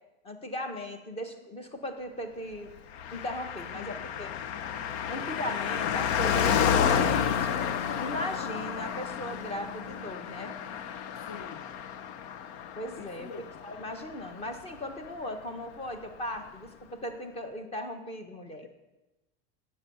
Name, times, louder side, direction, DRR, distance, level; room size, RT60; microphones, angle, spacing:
voice 1, 0.2-2.7 3.1-4.3 5.1-7.6 8.0-10.5 12.8-18.7, equal, 20° left, 7 dB, 1.5 m, -38 dB
Car passing by, 2.9-14.8 15.0-15.1, left 8 dB, 80° left, 0.9 m, -30 dB
voice 2, 11.3-11.6 13.0-13.5, left 5 dB, 40° left, 8 dB, 0.9 m, -44 dB
13.0 x 9.3 x 7.1 m, 1.0 s
supercardioid pair, 150°, 33 cm